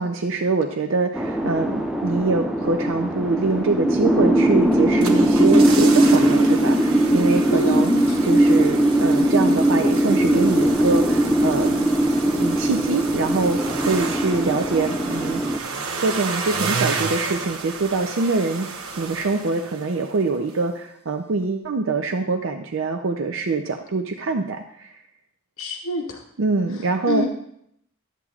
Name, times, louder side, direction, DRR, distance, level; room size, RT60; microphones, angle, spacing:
voice 1, 0.0-7.9 8.2-11.9 12.3-15.4 16.0-24.9 26.4-27.3, right 3 dB, 65° right, 5 dB, 0.6 m, -24 dB
sound 1, 1.1-15.6, right 1 dB, ahead, 0.5 m, -20 dB
sound 2, 4.7-20.2 20.5-20.6, right 4 dB, 85° right, 0.9 m, -32 dB
voice 2, 7.5-8.4 25.6-26.2 27.1-27.3, left 1 dB, 80° left, 1 dB, 0.9 m, -25 dB
12.5 x 8.2 x 2.4 m, 0.71 s
head